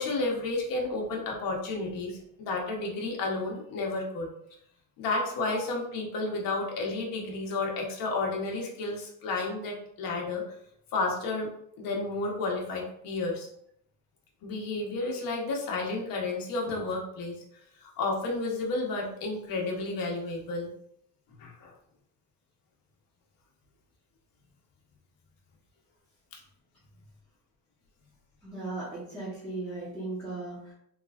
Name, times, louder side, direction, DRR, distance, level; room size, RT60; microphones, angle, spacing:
voice 1, 0.0-4.3 5.0-10.4 10.9-11.5 11.8-13.5 14.4-20.7 21.4-21.7 26.3-26.4, left 3 dB, 55° left, -1 dB, 1.0 m, -32 dB
voice 2, 28.4-30.7, right 2 dB, ahead, -12 dB, 1.0 m, -37 dB
3.2 x 3.0 x 2.4 m, 0.70 s
cardioid pair, 175°, 40 cm